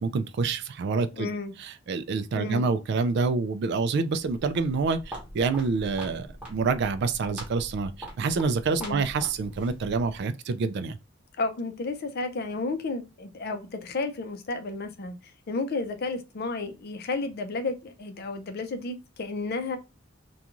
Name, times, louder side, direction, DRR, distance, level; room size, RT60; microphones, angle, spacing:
voice 1, 0.0-1.3 1.6-11.0, right 4 dB, 60° right, 0.3 m, -27 dB
voice 2, 1.1-1.5 2.3-2.6 8.8-9.0 11.4-19.8, left 3 dB, 55° left, 0.5 m, -32 dB
Walk footsteps, 4.2-10.2, equal, 5° right, 0.9 m, -43 dB
2.5 x 2.3 x 2.9 m
head